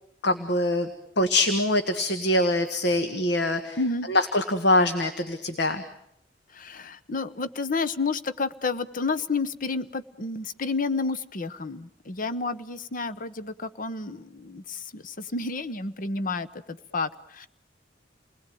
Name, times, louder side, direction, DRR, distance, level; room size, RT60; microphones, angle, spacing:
voice 1, 0.2-0.9 1.2-3.8 4.1-5.8, left 1 dB, 65° left, 8 dB, 1.6 m, -24 dB
voice 2, 3.8-4.1 6.5-17.5, left 3 dB, 45° left, 12 dB, 1.0 m, -30 dB
29.5 x 20.0 x 9.3 m, 0.76 s
head